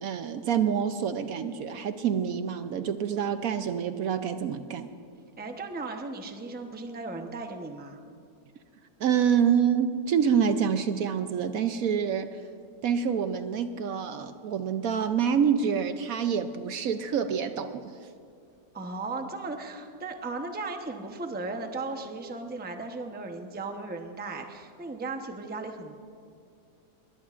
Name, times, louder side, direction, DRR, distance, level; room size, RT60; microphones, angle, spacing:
voice 1, 0.0-4.9 9.0-12.3 12.8-17.9, right 7 dB, 70° right, 9 dB, 1.0 m, -27 dB
voice 2, 5.4-8.0 18.7-26.0, right 3 dB, 10° right, 4 dB, 0.7 m, -36 dB
21.5 x 20.0 x 2.5 m, 2.4 s
omnidirectional pair, 1.7 m